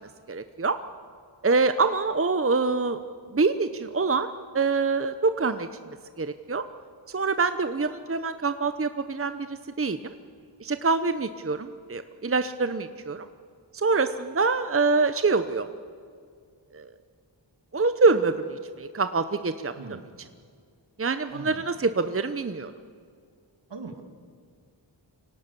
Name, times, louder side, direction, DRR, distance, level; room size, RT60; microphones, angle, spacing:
voice 1, 0.3-0.8 1.4-3.0 3.3-4.3 4.5-5.7 6.2-6.6 7.1-10.1 10.6-13.3 13.7-15.7 16.7-16.9 17.7-19.7 21.0-22.7, right 4 dB, 30° right, 10 dB, 0.8 m, -25 dB
voice 2, 21.3-21.6 23.7-24.0, right 3 dB, 65° right, 6 dB, 2.5 m, -40 dB
25.0 x 18.0 x 6.9 m, 2.1 s
wide cardioid pair, 60°, 45 cm